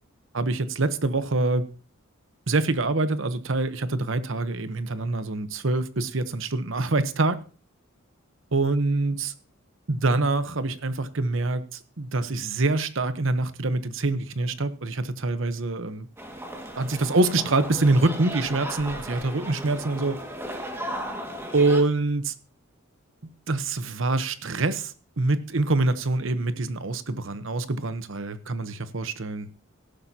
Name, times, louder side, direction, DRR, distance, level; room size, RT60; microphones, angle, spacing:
voice 1, 0.3-1.7 2.5-7.4 8.5-9.3 9.9-16.1 16.8-20.2 21.5-22.3 23.5-29.5, right 2 dB, 65° right, 1.0 m, -25 dB
sound 1, 16.2-21.8, right 1 dB, 10° right, 2.0 m, -36 dB
17.5 x 11.5 x 2.9 m
head